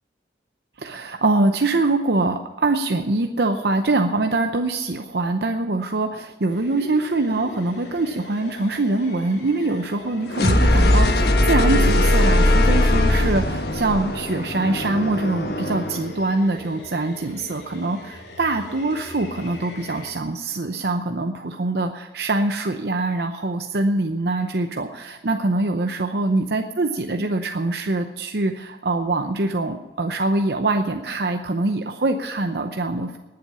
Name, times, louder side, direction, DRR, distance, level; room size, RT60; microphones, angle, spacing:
voice 1, 0.8-33.2, right 2 dB, 65° right, 5 dB, 0.7 m, -24 dB
sound 1, 6.5-20.1, equal, 80° left, 3.5 m, -40 dB
sound 2, 10.3-16.1, left 1 dB, 60° left, 1.5 m, -19 dB
19.5 x 7.8 x 5.6 m, 1.2 s
head